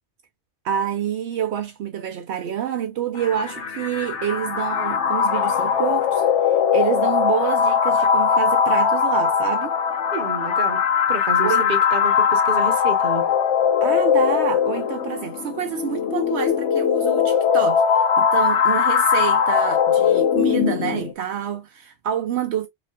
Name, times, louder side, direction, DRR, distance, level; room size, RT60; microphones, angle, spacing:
voice 1, 0.6-6.2 6.7-9.7 11.4-11.6 13.8-17.8 18.2-22.7, right 9 dB, 75° right, 0.8 m, -27 dB
sound 1, 3.2-21.1, left 7 dB, 90° left, 1.0 m, -20 dB
voice 2, 10.1-10.8 11.1-13.3, right 3 dB, 50° right, 1.0 m, -29 dB
4.9 x 2.4 x 2.3 m
omnidirectional pair, 1.1 m